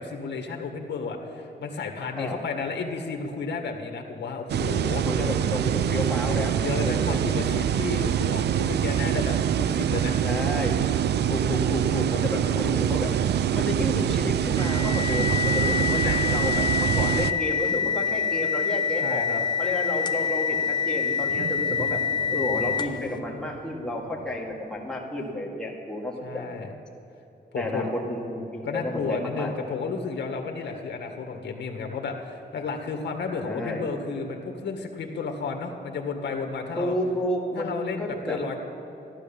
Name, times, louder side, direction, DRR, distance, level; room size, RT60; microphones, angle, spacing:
voice 1, 0.0-5.1 6.6-10.2 15.9-16.2 19.0-19.4 26.2-26.7 27.5-27.9 28.6-37.0 37.6-38.6, left 4 dB, 80° left, 3 dB, 1.9 m, -32 dB
sound 1, 4.5-17.3, right 10 dB, 70° right, 0.5 m, -25 dB
voice 2, 5.0-7.2 10.2-10.8 11.3-13.1 13.5-19.3 19.6-22.0 22.3-26.6 27.5-29.5 33.3-33.8 36.8-38.4, left 1 dB, 5° left, -3 dB, 2.2 m, -31 dB
sound 2, 14.6-23.1, left 7 dB, 25° left, 0.7 m, -26 dB
Wild animals, 20.3-25.3, right 5 dB, 45° right, 0.8 m, -42 dB
15.0 x 11.5 x 7.2 m, 3.0 s
wide cardioid pair, 160°, 18 cm